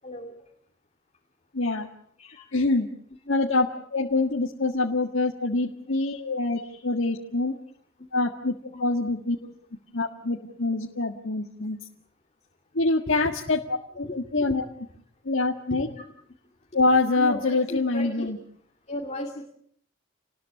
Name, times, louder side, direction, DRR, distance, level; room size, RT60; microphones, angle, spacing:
voice 1, 0.0-0.4 2.2-2.5 5.5-5.7 6.6-6.8 8.7-8.8 9.4-9.5 13.2-13.3 14.0-14.6 15.7-16.1 17.2-18.3 18.9-19.4, left 1 dB, 35° left, 3 dB, 2.5 m, -36 dB
voice 2, 1.5-1.9 2.5-2.9 3.3-7.5 8.1-9.4 9.9-11.8 12.8-14.6 15.3-15.9 16.7-18.4, left 2 dB, 65° left, 1 dB, 1.8 m, -25 dB
29.0 x 20.0 x 8.5 m, 0.64 s
head